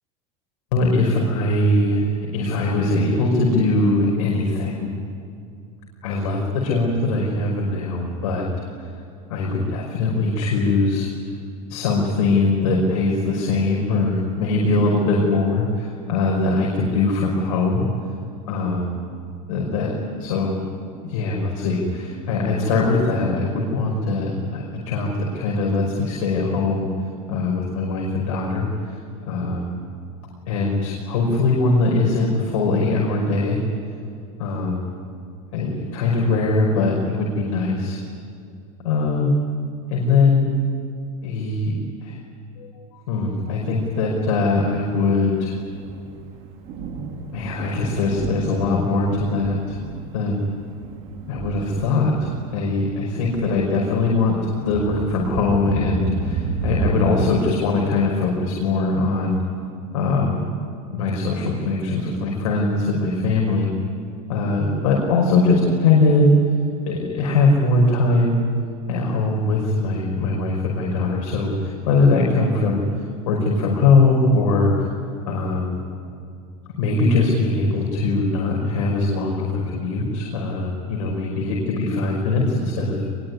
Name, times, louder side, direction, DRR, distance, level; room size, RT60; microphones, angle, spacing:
voice 1, 0.7-4.9 6.0-8.5 9.3-11.1 11.7-17.8 18.5-19.0 19.5-26.9 27.3-29.0 29.3-29.8 30.5-33.6 34.4-34.9 35.5-38.0 38.8-39.3 39.9-40.5 41.2-41.7 42.0-42.2 42.6-42.7 42.9-45.6 47.3-49.8 50.1-50.5 51.3-59.4 59.9-60.4 60.9-63.7 64.3-66.3 66.8-68.4 68.9-72.8 73.3-74.7 75.3-75.8 76.8-83.0, left 3 dB, 80° left, -1 dB, 5.5 m, -21 dB
Thunder, 43.7-57.4, right 3 dB, 35° right, 3.0 m, -31 dB
26.0 x 23.0 x 9.8 m, 2.4 s
supercardioid pair, 165°, 18 cm